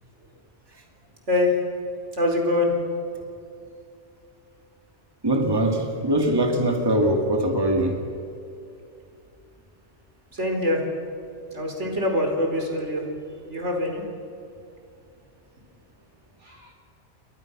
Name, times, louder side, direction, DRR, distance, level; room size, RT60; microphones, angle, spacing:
voice 1, 1.3-2.7 10.3-10.8 11.5-13.0 13.5-14.0 16.4-16.7, left 1 dB, 80° right, 1 dB, 4.9 m, -24 dB
voice 2, 5.2-8.0, right 1 dB, 20° right, 2 dB, 2.5 m, -22 dB
29.0 x 23.5 x 6.2 m, 2.6 s
omnidirectional pair, 1.2 m